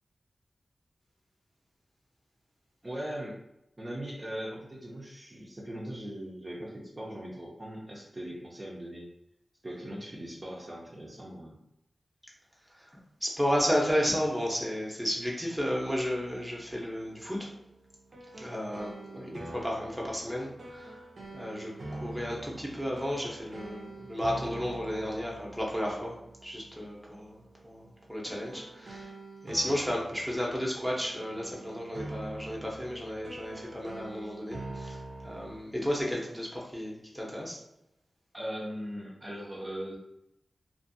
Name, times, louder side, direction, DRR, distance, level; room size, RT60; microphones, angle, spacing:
voice 1, 2.8-3.4 3.8-9.1 9.6-11.6 19.1-19.4 38.3-40.0, equal, 35° right, -4 dB, 0.6 m, -40 dB
voice 2, 13.2-17.5 18.3-21.0 21.3-26.1 26.4-29.1 29.4-37.6, equal, 5° right, -3 dB, 0.8 m, -33 dB
sound 1, 15.7-35.6, right 2 dB, 70° right, 0.6 m, -45 dB
2.5 x 2.5 x 2.6 m, 0.85 s
cardioid pair, 45°, 0 cm